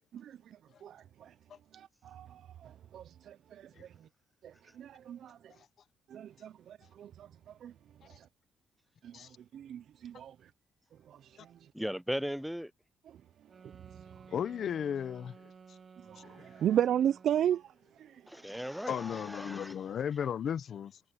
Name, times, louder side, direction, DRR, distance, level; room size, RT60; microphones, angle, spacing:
voice 1, 0.1-1.3 1.7-4.1 4.4-5.5 6.1-7.7 8.0-8.3 9.0-10.5 11.1-11.7 13.9-14.1 16.1-18.4, right 10 dB, 70° right, 0.4 m, -36 dB
voice 2, 11.7-12.7 18.3-19.8, equal, ahead, 0.5 m, -37 dB
sound 1, 13.5-17.7, right 5 dB, 40° right, 1.9 m, -55 dB
voice 3, 14.3-15.3 16.2-16.5 18.9-21.0, left 8 dB, 60° left, 0.7 m, -35 dB
cardioid pair, 90°, 0 cm